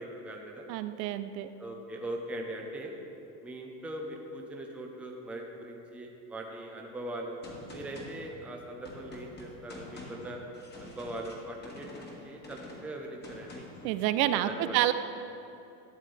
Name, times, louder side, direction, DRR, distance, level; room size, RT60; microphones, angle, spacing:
voice 1, 0.0-0.6 1.6-2.9 3.4-7.4 7.7-10.4 10.8-11.9 12.2-13.7 14.3-14.8, right 1 dB, 5° right, 0 dB, 0.6 m, -40 dB
voice 2, 0.7-1.5 13.8-14.9, right 13 dB, 80° right, 11 dB, 0.7 m, -28 dB
Gunshot gunfire, 7.4-13.9, left 2 dB, 20° left, 1.6 m, -47 dB
12.5 x 7.5 x 3.3 m, 2.8 s
supercardioid pair, 125°, 49 cm